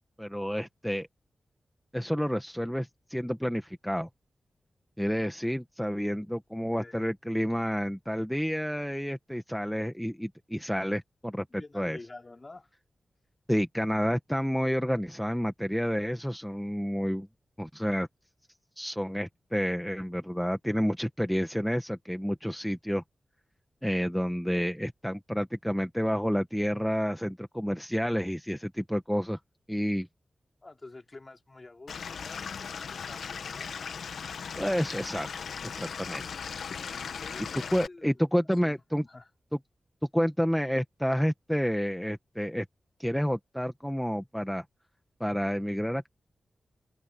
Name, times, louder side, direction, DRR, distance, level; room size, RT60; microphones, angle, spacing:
voice 1, 0.2-1.1 1.9-4.1 5.0-11.4 11.7-12.0 13.5-17.3 17.6-18.1 18.8-23.0 23.8-29.4 29.7-30.1 34.6-35.3 35.7-36.2 37.7-39.0 40.1-42.6 43.0-44.6 45.2-46.1, equal, ahead, 1.5 m, -29 dB
voice 2, 11.5-12.7 30.6-33.7 37.2-38.2 38.5-39.3, left 2 dB, 35° left, 4.5 m, -48 dB
Stream / Liquid, 31.9-37.9, left 6 dB, 85° left, 1.3 m, -38 dB
open air
cardioid pair, 65°, 0 cm